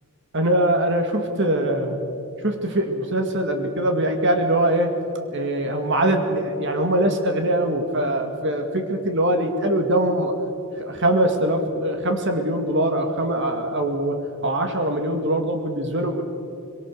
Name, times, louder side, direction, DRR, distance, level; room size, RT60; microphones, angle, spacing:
voice 1, 0.3-2.0 2.4-4.9 5.3-10.3 10.8-14.2 14.4-16.2, right 1 dB, 55° right, 5 dB, 2.1 m, -22 dB
23.5 x 23.0 x 6.7 m, 2.6 s
head